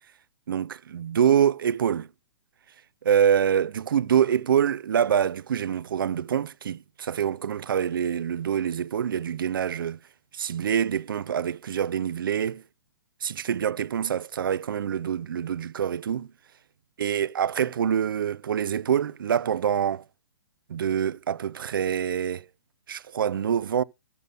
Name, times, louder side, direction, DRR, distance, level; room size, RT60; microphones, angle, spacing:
voice 1, 0.5-2.1 3.0-10.0 10.3-12.6 13.2-16.3 17.0-20.0 20.7-22.5 22.9-23.8, right 8 dB, 60° right, 0.5 m, -25 dB
13.5 x 6.9 x 3.9 m
figure-of-eight pair, 120°, 13 cm